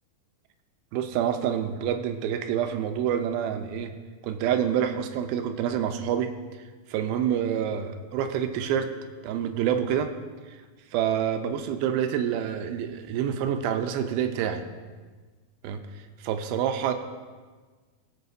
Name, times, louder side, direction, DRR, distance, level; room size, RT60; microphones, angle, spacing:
voice 1, 0.9-3.9 4.2-6.3 6.9-8.9 9.2-10.1 10.5-10.6 10.9-14.7 15.6-16.9, right 9 dB, 85° right, 7 dB, 2.5 m, -27 dB
20.5 x 7.2 x 2.7 m, 1.4 s
omnidirectional pair, 4.3 m